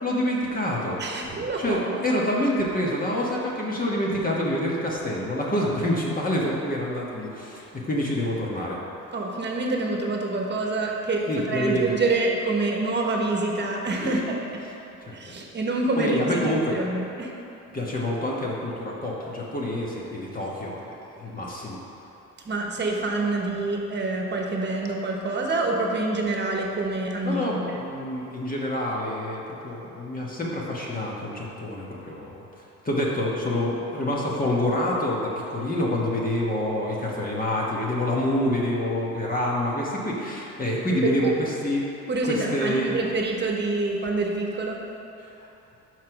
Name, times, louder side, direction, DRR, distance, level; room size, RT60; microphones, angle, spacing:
voice 1, 0.0-1.0 1.6-8.8 11.3-11.9 14.0-14.2 15.1-15.2 16.0-16.8 17.7-21.8 27.2-32.4 32.8-41.8 42.2-43.0, left 1 dB, 30° left, -4 dB, 1.3 m, -27 dB
voice 2, 1.0-1.8 9.1-14.4 15.1-17.3 22.4-27.8 41.0-41.3 42.1-44.8, right 2 dB, 35° right, 0 dB, 1.1 m, -26 dB
5.9 x 4.7 x 5.9 m, 2.9 s
cardioid pair, 90°, 30 cm